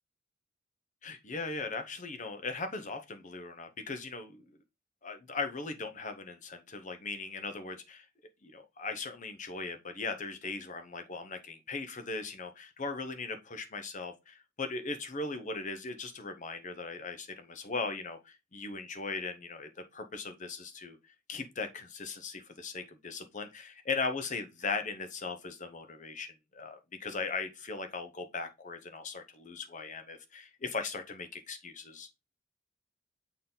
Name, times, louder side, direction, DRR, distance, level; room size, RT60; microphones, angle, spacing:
voice 1, 1.0-4.5 5.0-8.1 8.4-21.0 21.3-32.1, left 4 dB, 40° left, 0.9 m, -38 dB
6.6 x 3.8 x 3.9 m
head